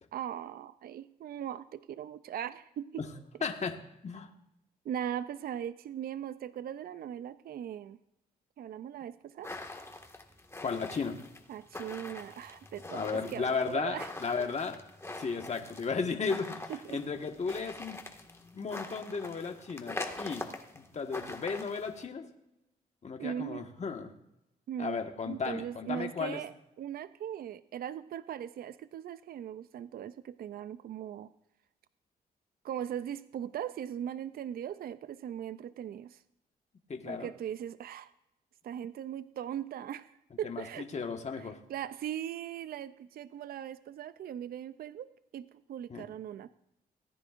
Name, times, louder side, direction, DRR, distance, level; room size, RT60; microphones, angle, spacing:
voice 1, 0.1-3.0 4.8-8.0 8.6-9.5 11.5-14.1 14.4-14.5 16.7-17.0 23.2-23.7 24.7-25.0 25.2-26.5 26.8-31.3 32.6-36.2 37.1-38.1 38.6-40.1 40.4-40.9 41.4-46.5, right 10 dB, 65° right, 14 dB, 0.5 m, -39 dB
voice 2, 3.4-3.8 4.0-4.3 10.6-11.2 12.9-14.8 15.2-18.0 18.5-20.4 20.7-22.3 23.0-24.1 24.8-26.4 36.9-37.3 40.4-41.6 45.9-46.0, left 5 dB, 45° left, 4 dB, 1.5 m, -35 dB
sound 1, 9.4-22.1, left 2 dB, 15° left, 1.8 m, -44 dB
18.0 x 9.8 x 2.5 m, 0.86 s
supercardioid pair, 60°, 17 cm